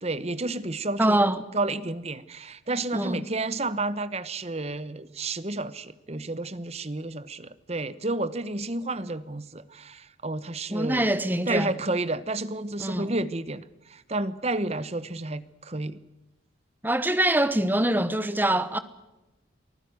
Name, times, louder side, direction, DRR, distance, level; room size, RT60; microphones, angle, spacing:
voice 1, 0.0-11.1 11.5-16.0, right 2 dB, 35° right, 1.0 m, -31 dB
voice 2, 1.0-1.4 2.9-3.2 10.7-11.7 12.8-13.1 16.8-18.8, right 1 dB, 10° right, 1.1 m, -24 dB
24.5 x 15.0 x 9.3 m
head